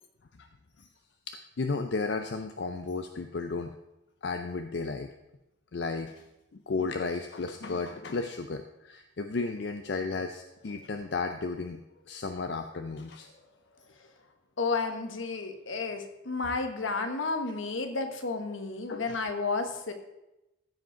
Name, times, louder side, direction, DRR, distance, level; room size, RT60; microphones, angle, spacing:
voice 1, 1.3-3.8 4.2-5.1 5.7-6.2 6.5-11.8 12.1-13.3 18.9-19.2, left 4 dB, 60° left, 7 dB, 0.5 m, -34 dB
voice 2, 14.6-19.9, left 3 dB, 80° left, 7 dB, 1.2 m, -32 dB
15.0 x 5.2 x 5.0 m, 0.94 s
head